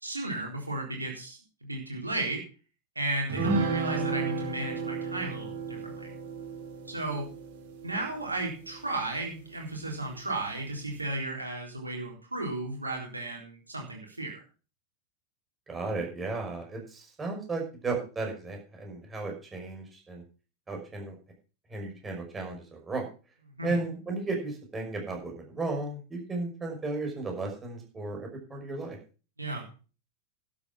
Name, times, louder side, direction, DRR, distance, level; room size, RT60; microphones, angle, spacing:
voice 1, 0.0-2.4 3.0-6.1 6.9-7.3 7.8-14.3 23.6-23.7 29.4-29.6, right 2 dB, 80° right, 0 dB, 3.8 m, -34 dB
sound 1, 3.3-9.0, right 3 dB, 55° right, 3.0 m, -33 dB
voice 2, 15.7-20.2 20.7-21.2 21.7-23.1 23.6-29.0, right 3 dB, 15° right, 1 dB, 5.7 m, -34 dB
12.0 x 8.7 x 6.0 m, 0.36 s
figure-of-eight pair, 90°, 0 cm